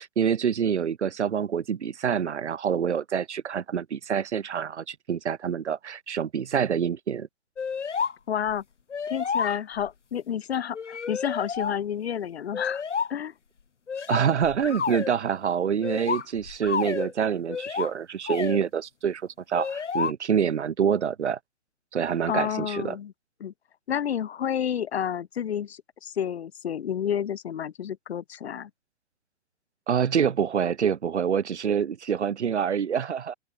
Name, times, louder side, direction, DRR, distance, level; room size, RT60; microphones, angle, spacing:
voice 1, 0.0-7.3 14.1-19.2 19.5-21.4 21.9-23.0 29.9-33.3, right 7 dB, 70° right, 2.2 m, -26 dB
sound 1, 7.6-8.1 8.5-8.6 8.9-9.9 10.7-11.8 12.5-13.1 13.9-15.1 15.8-17.1 17.5-17.9 18.3-18.6 19.5-20.1, left 6 dB, 80° left, 3.3 m, -30 dB
voice 2, 8.3-8.6 9.1-12.8 13.1-13.3 22.2-23.1 23.4-23.5 23.9-28.7, left 9 dB, 60° left, 5.8 m, -30 dB
open air
hypercardioid pair, 140°, 35 cm